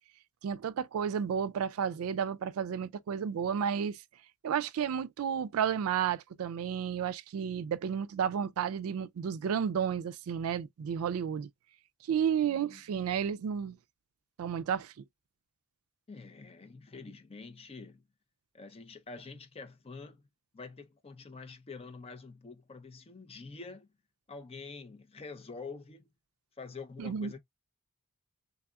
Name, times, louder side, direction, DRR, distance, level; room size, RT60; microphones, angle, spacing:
voice 1, 0.4-4.0 4.4-11.5 12.1-13.8 14.4-14.9 27.0-27.3, right 8 dB, 70° right, 0.3 m, -32 dB
voice 2, 12.4-13.0 16.1-18.0 18.5-20.2 20.5-23.9 24.3-26.1 26.6-27.4, left 4 dB, 25° left, 0.5 m, -46 dB
3.6 x 3.4 x 2.2 m
head